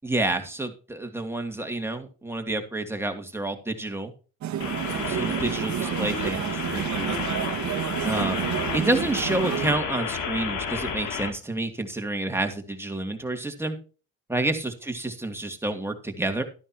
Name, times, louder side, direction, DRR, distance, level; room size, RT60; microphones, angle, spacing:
voice 1, 0.0-4.1 5.0-7.2 8.0-8.4 8.7-13.8 14.3-16.4, right 2 dB, 10° right, 5 dB, 2.6 m, -29 dB
sound 1, 4.4-9.7, right 10 dB, 70° right, 1.5 m, -29 dB
sound 2, 4.6-11.3, left 6 dB, 85° left, 2.7 m, -32 dB
13.0 x 11.0 x 2.9 m, 0.35 s
cardioid pair, 90°, 30 cm